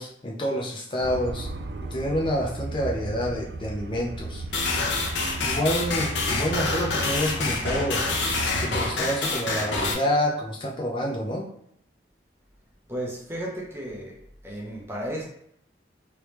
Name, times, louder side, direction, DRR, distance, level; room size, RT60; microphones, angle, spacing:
voice 1, 0.0-1.5 1.9-4.4 5.4-8.0 8.3-11.5, equal, 25° left, -2 dB, 0.5 m, -28 dB
sound 1, 1.0-9.0, right 2 dB, 65° right, 0.3 m, -35 dB
sound 2, 4.5-9.9, left 3 dB, 80° left, 0.7 m, -27 dB
voice 2, 12.9-15.3, right 1 dB, 15° right, -2 dB, 0.7 m, -34 dB
3.3 x 3.1 x 3.0 m, 0.72 s
head